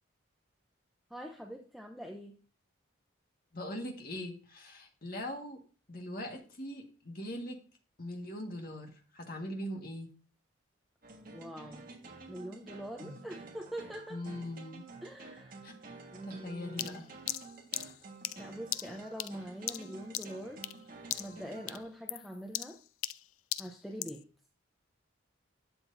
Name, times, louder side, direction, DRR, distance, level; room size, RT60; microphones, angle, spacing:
voice 1, 1.1-2.4 11.3-11.8 12.3-14.2 15.0-15.6 16.1-17.0 18.4-20.6 21.2-22.8 23.6-24.3, equal, ahead, 1 dB, 0.7 m, -44 dB
voice 2, 3.5-5.6 5.9-7.6 8.0-10.1 13.0-13.1 14.1-14.9 15.6-15.7 16.2-17.1, left 1 dB, 45° left, 2 dB, 1.7 m, -41 dB
sound 1, 11.0-21.8, right 3 dB, 45° right, 1.7 m, -50 dB
sound 2, 16.8-20.8 21.1-21.4 21.7-24.2, left 14 dB, 90° left, 0.4 m, -39 dB
11.5 x 7.7 x 2.7 m, 0.38 s
head